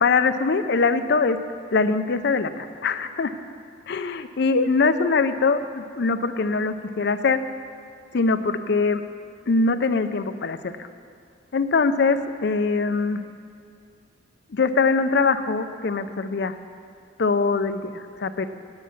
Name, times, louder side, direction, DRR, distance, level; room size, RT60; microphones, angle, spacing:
voice 1, 0.0-1.4 1.7-3.3 3.9-7.4 8.1-9.0 9.5-10.9 11.5-13.2 14.5-16.6 17.2-18.5, left 4 dB, 60° left, 10 dB, 0.5 m, -22 dB
9.7 x 8.3 x 7.0 m, 2.3 s
head